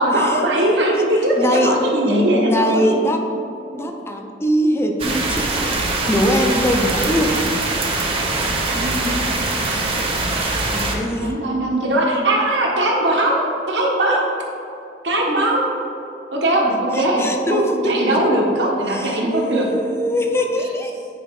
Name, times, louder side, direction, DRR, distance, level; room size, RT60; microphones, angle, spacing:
voice 1, 0.0-3.0 8.4-9.3 11.2-14.3 15.0-15.6 16.3-17.2 17.5-19.7 20.4-20.5, right 1 dB, 75° right, -2 dB, 1.3 m, -20 dB
voice 2, 1.4-1.8 2.0-3.2 3.7-7.3 10.7-11.3 15.3-15.4 16.9-18.3 18.6-20.9, equal, 15° left, 3 dB, 0.6 m, -22 dB
sound 1, 5.0-11.0, right 2 dB, 35° right, 1.0 m, -22 dB
9.4 x 4.8 x 3.7 m, 2.7 s
head